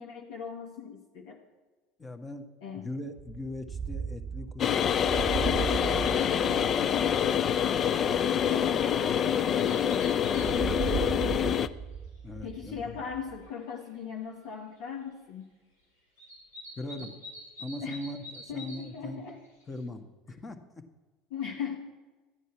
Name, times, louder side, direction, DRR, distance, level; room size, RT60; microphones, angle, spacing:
voice 1, 0.0-1.4 2.6-2.9 6.2-6.9 8.5-11.6 12.4-15.5 17.8-18.0 18.5-19.4 21.3-21.8, left 7 dB, 65° left, 0 dB, 1.4 m, -40 dB
voice 2, 2.0-2.5 2.8-5.3 7.9-8.2 12.2-13.0 16.8-17.2 17.6-19.2 19.7-20.6, left 2 dB, 20° left, 7 dB, 1.5 m, -40 dB
sound 1, 3.2-9.8 10.3-13.5, right 6 dB, 35° right, 0.4 m, -37 dB
sound 2, 4.6-11.7, left 8 dB, 40° left, 0.5 m, -26 dB
sound 3, 6.0-6.5 6.8-6.9 7.2-7.5 7.9-8.0 8.9-10.5 11.2-11.3 12.5-12.6 13.2-13.3 13.5-13.9 16.2-18.9 19.1-19.8, left 1 dB, 90° left, 5.0 m, -46 dB
14.0 x 9.4 x 5.9 m, 1.2 s
hypercardioid pair, 75°, 0 cm